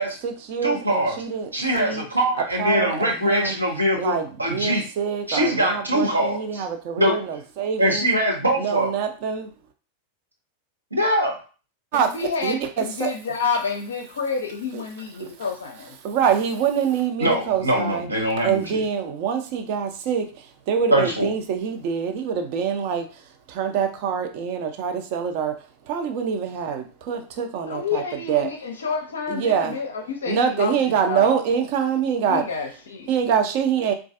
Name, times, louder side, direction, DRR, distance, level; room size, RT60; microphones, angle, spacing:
voice 1, 0.0-2.1 2.4-3.6 3.9-8.1 8.6-9.5 11.9-12.2 12.4-13.1 14.7-14.8 15.2-15.3 16.0-18.1 18.4-25.6 25.9-28.5 29.3-29.8 30.3-32.5 33.1-33.9, right 7 dB, 45° right, 6 dB, 0.5 m, -25 dB
voice 2, 0.6-1.2 1.5-4.8 5.3-6.6 7.0-7.1 7.8-8.9 10.9-11.4 17.2-18.8 20.9-21.3, equal, 85° right, -1 dB, 0.8 m, -22 dB
voice 3, 11.9-15.9 27.7-30.8 31.0-31.4 32.2-33.1, left 5 dB, 65° left, 5 dB, 0.4 m, -29 dB
3.9 x 2.4 x 2.5 m, 0.36 s
figure-of-eight pair, 90°, 0 cm